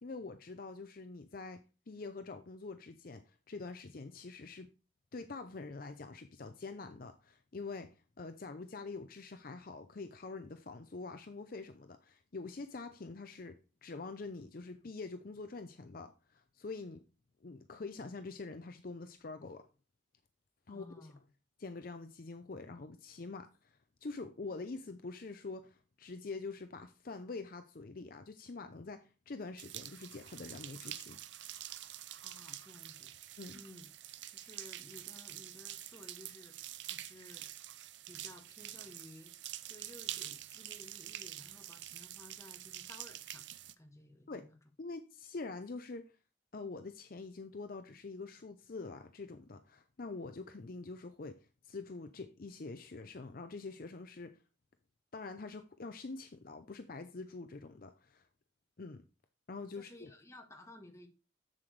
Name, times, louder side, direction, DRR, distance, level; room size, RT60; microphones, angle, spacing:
voice 1, 0.0-4.7 5.1-17.0 17.4-19.7 20.7-21.1 21.6-31.2 33.4-33.6 44.3-44.5 44.8-46.1 46.5-54.4 55.1-58.2 58.8-59.0 59.5-60.1, left 3 dB, 50° left, 0.6 m, -45 dB
voice 2, 20.7-21.2 32.2-33.1 33.5-33.9 34.3-36.6 36.8-37.5 38.1-39.3 39.7-43.4 43.8-44.6 59.7-61.1, left 1 dB, 15° left, 1.3 m, -55 dB
sound 1, 29.6-43.7, right 13 dB, 70° right, 0.6 m, -47 dB
7.7 x 7.5 x 3.3 m
head